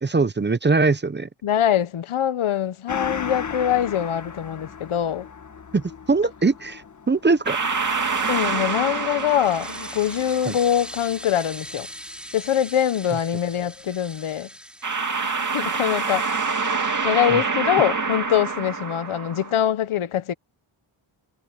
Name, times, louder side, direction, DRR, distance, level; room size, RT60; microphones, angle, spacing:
voice 1, 0.0-1.3 5.7-6.8 7.1-7.6 10.5-10.6 17.3-17.4, right 3 dB, 20° right, 0.8 m, -21 dB
voice 2, 1.4-5.3 8.3-11.9 12.3-14.5 15.5-16.3 17.0-20.3, left 10 dB, 85° left, 1.2 m, -23 dB
Gong, 2.9-11.8 12.2-12.3, left 6 dB, 35° left, 1.7 m, -38 dB
sound 1, 7.4-10.8 14.8-19.6, right 4 dB, 40° right, 2.5 m, -26 dB
sound 2, 8.7-15.5, equal, ahead, 6.7 m, -40 dB
wide cardioid pair, 100°, 48 cm